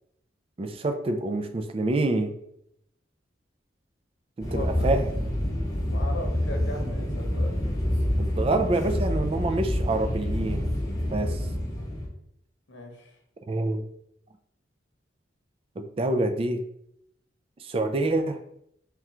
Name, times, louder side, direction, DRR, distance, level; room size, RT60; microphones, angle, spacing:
voice 1, 0.6-2.3 4.4-5.1 8.2-10.7 11.1-11.4 13.5-13.8 15.8-16.6 17.6-18.4, right 2 dB, 30° right, 7 dB, 0.3 m, -27 dB
sound 1, 4.4-12.1, left 1 dB, 20° left, 0.7 m, -27 dB
voice 2, 4.5-4.9 5.9-7.5 7.8-7.9 11.1-11.4 12.7-13.1, left 1 dB, 80° left, 2 dB, 0.9 m, -38 dB
3.6 x 2.3 x 4.2 m, 0.74 s
head